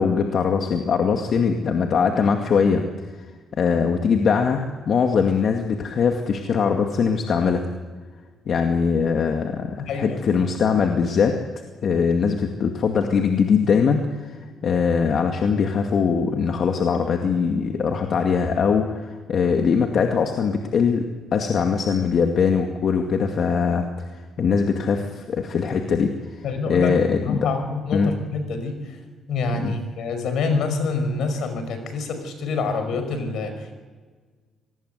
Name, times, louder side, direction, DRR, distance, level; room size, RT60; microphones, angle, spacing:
voice 1, 0.0-2.8 3.6-7.6 8.5-11.4 11.8-14.4 14.6-21.1 21.3-23.9 24.1-27.5 27.9-28.1 29.5-29.8, left 6 dB, 60° left, 4 dB, 2.2 m, -21 dB
voice 2, 9.9-10.2 26.4-26.9 27.2-28.8 29.3-33.5, left 4 dB, 75° left, 8 dB, 5.5 m, -26 dB
26.0 x 20.0 x 8.2 m, 1.5 s
cardioid pair, 90°, 0 cm